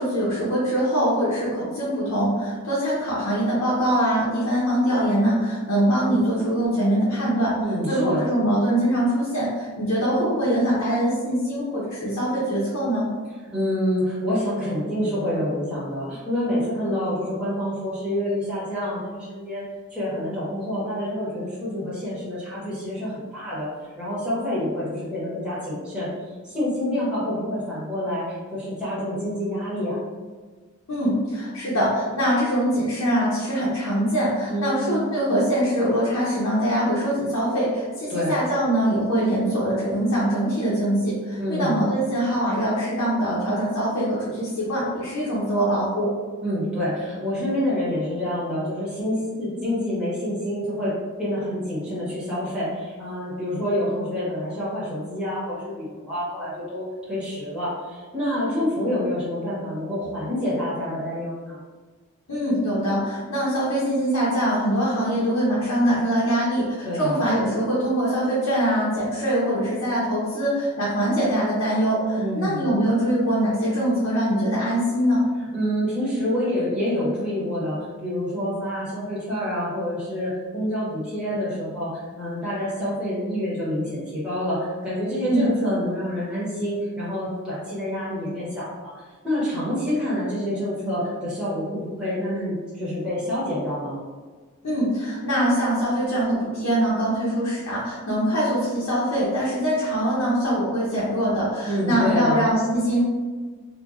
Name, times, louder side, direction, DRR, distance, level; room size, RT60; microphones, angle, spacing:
voice 1, 0.0-7.6 7.8-13.1 30.9-46.1 62.3-75.3 85.2-85.5 94.6-103.0, equal, 85° left, -8 dB, 0.8 m, -23 dB
voice 2, 7.6-8.3 13.5-19.6 19.9-23.7 24.0-30.0 34.5-34.8 38.1-38.3 41.4-41.8 46.4-50.9 51.2-61.6 66.8-67.3 72.2-72.7 75.5-94.0 101.6-102.4, equal, 5° right, -11 dB, 0.9 m, -27 dB
3.7 x 2.3 x 2.4 m, 1.4 s
head